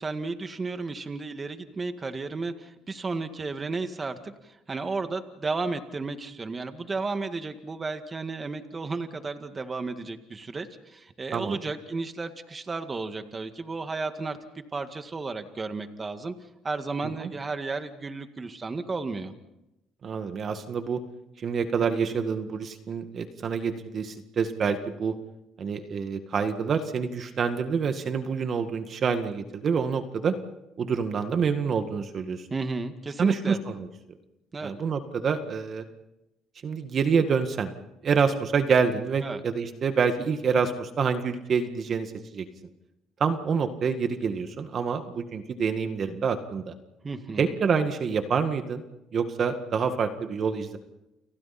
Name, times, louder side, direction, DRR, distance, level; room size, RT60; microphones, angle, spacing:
voice 1, 0.0-16.3 16.6-19.3 32.5-33.6 34.5-34.7 39.2-39.4 47.0-47.5, right 3 dB, 30° right, 7 dB, 2.0 m, -33 dB
voice 2, 20.0-21.0 21.4-25.1 25.6-30.3 30.8-32.4 33.2-33.9 34.6-35.9 36.6-37.7 38.0-42.5 43.2-46.7 47.4-48.8 49.1-50.8, right 6 dB, 45° right, 7 dB, 1.9 m, -27 dB
29.5 x 29.5 x 4.4 m, 0.93 s
cardioid pair, 90°, 0 cm